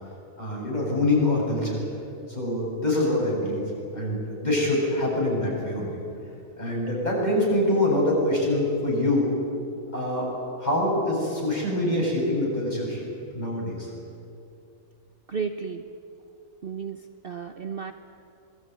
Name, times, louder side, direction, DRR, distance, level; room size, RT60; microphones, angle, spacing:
voice 1, 0.4-1.8 2.3-3.6 3.9-5.9 6.6-9.4 9.9-10.3 10.6-13.0 13.3-13.9, left 1 dB, 30° left, -3 dB, 8.1 m, -25 dB
voice 2, 15.3-15.8 16.6-17.9, right 6 dB, 45° right, 7 dB, 1.1 m, -33 dB
26.5 x 20.5 x 9.6 m, 2.7 s
omnidirectional pair, 1.5 m